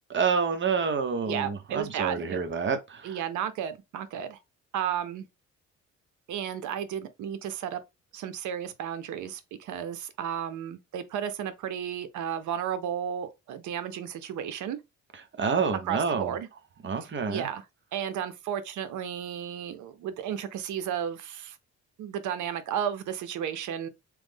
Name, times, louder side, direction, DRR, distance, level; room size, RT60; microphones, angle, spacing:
voice 1, 0.1-3.2 15.4-16.3 16.8-17.5, right 5 dB, 40° right, 0.8 m, -28 dB
voice 2, 1.2-2.4 3.0-4.4 4.7-5.3 6.3-7.8 8.1-14.8 15.8-16.5 17.0-17.7 17.9-21.6 22.0-23.9, right 9 dB, 75° right, 0.6 m, -33 dB
3.1 x 2.1 x 3.4 m
cardioid pair, 90°, 30 cm